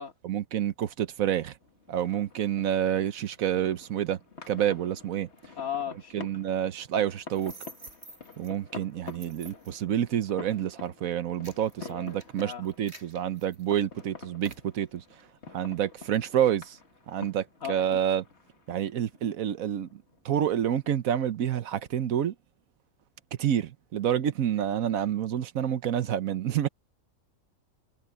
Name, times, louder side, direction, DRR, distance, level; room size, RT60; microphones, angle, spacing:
voice 1, 0.2-1.5 1.9-4.2 4.5-5.3 6.1-7.5 8.4-15.0 15.5-16.8 17.1-18.2 18.7-22.3 23.4-26.7, right 10 dB, 75° right, 1.3 m, -28 dB
sound 1, 1.6-20.9, left 4 dB, 50° left, 2.0 m, -49 dB
voice 2, 5.6-6.3 11.8-12.7 17.6-18.0, left 8 dB, 75° left, 2.8 m, -37 dB
sound 2, 7.3-8.5 9.1-9.8 10.5-10.7 11.1-14.0 14.4-14.7, right 2 dB, 50° right, 7.7 m, -49 dB
omnidirectional pair, 1.5 m